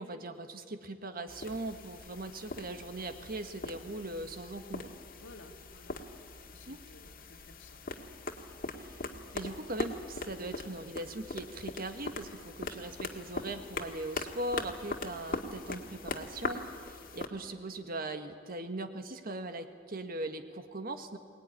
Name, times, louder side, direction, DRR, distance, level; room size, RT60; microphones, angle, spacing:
voice 1, 0.0-4.9 6.7-6.8 8.8-9.0 9.3-21.2, right 2 dB, 50° right, 8 dB, 1.7 m, -40 dB
sound 1, 1.3-17.3, left 2 dB, 50° left, 1.9 m, -41 dB
voice 2, 5.1-7.8, left 2 dB, 80° left, 5 dB, 2.1 m, -56 dB
23.0 x 19.5 x 9.9 m, 2.1 s
head